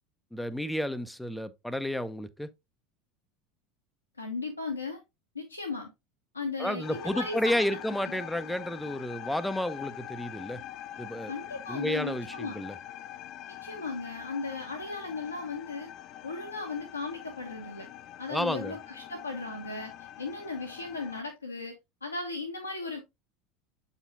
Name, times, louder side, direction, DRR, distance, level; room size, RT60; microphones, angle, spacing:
voice 1, 0.3-2.5 6.6-10.6 11.0-11.3 11.7-12.8 18.3-18.8, left 1 dB, 5° left, 0.8 m, -31 dB
voice 2, 4.2-5.0 5.3-5.9 6.3-7.8 11.3-12.6 13.6-15.9 16.2-17.9 18.2-21.8 22.0-23.0, left 3 dB, 90° left, 1.3 m, -36 dB
sound 1, 6.8-21.2, left 12 dB, 45° left, 0.5 m, -44 dB
8.1 x 5.6 x 2.7 m
figure-of-eight pair, 75°, 0 cm